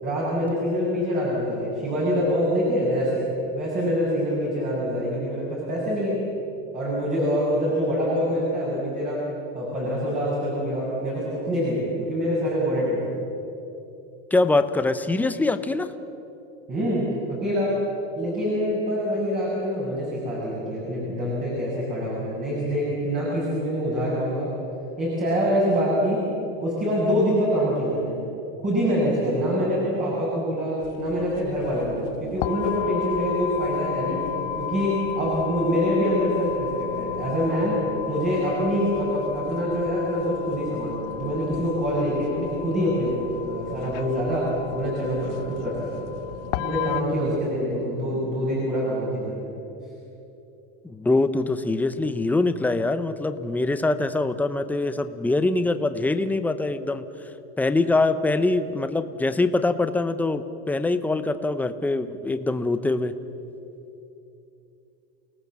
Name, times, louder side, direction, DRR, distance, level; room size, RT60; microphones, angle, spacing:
voice 1, 0.0-6.2 6.7-9.2 9.5-13.0 16.7-17.7 18.2-24.5 25.0-26.2 26.6-28.2 28.6-34.2 34.6-37.8 38.1-44.5 44.7-46.2 46.6-49.5, equal, 25° right, -5 dB, 6.8 m, -25 dB
voice 2, 14.3-15.9 47.2-47.3 50.8-57.0 57.6-63.1, left 2 dB, 5° left, 10 dB, 0.8 m, -23 dB
sound 1, 30.8-47.0, left 10 dB, 65° left, 1.2 m, -33 dB
29.0 x 18.5 x 7.5 m, 2.9 s
supercardioid pair, 155°, 30 cm